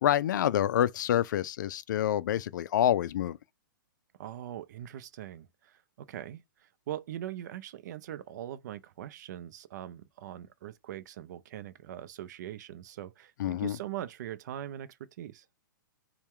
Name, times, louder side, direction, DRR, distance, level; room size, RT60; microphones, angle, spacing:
voice 1, 0.0-3.4 13.4-13.8, left 11 dB, 65° left, 0.4 m, -27 dB
voice 2, 4.2-15.4, right 12 dB, 55° right, 0.5 m, -41 dB
4.2 x 2.2 x 3.6 m
hypercardioid pair, 125°, 11 cm